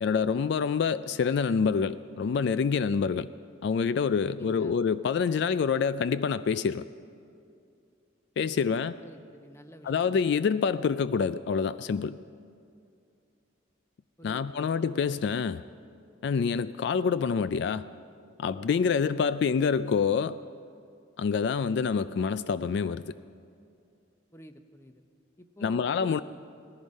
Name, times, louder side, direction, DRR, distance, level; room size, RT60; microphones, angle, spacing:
voice 1, 0.0-3.3 3.6-6.8 8.4-8.9 9.8-12.2 14.2-15.6 16.2-17.9 18.4-20.4 21.2-23.1 25.6-26.2, left 6 dB, 60° left, 14 dB, 0.3 m, -27 dB
voice 2, 4.4-4.8 8.6-10.1 14.2-14.7 24.3-25.0 25.4-26.2, equal, 15° left, 8 dB, 0.7 m, -49 dB
18.5 x 14.5 x 5.3 m, 2.5 s
head